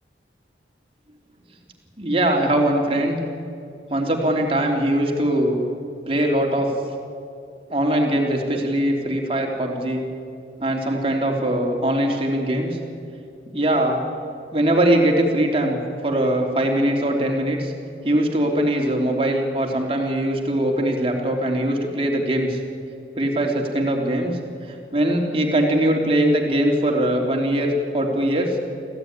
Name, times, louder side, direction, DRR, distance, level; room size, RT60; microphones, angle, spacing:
voice 1, 2.0-3.2 3.9-5.5 6.1-6.7 7.7-10.1 10.6-12.8 13.5-14.0 14.5-15.8 16.0-17.7 18.0-22.6 23.2-24.4 24.7-28.6, right 1 dB, 30° right, 1 dB, 3.3 m, -21 dB
25.5 x 16.0 x 9.8 m, 2.5 s
head